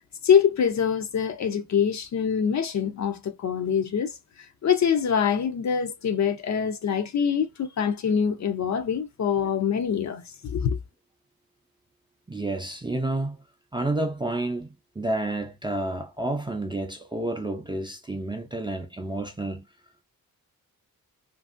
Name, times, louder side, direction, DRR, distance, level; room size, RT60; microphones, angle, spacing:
voice 1, 0.2-4.2 4.6-10.8, left 7 dB, 50° left, 0.5 m, -24 dB
voice 2, 12.3-13.4 13.7-19.6, right 2 dB, 15° right, 0.4 m, -30 dB
2.8 x 2.6 x 2.4 m
cardioid pair, 95°, 36 cm